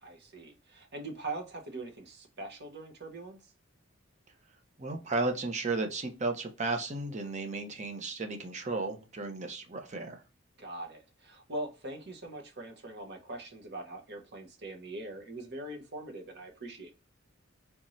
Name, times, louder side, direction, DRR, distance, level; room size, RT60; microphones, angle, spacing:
voice 1, 0.0-3.5 10.6-16.9, right 2 dB, 55° right, 1.0 m, -42 dB
voice 2, 4.8-10.2, right 3 dB, 35° right, 0.7 m, -34 dB
3.4 x 3.1 x 2.6 m
head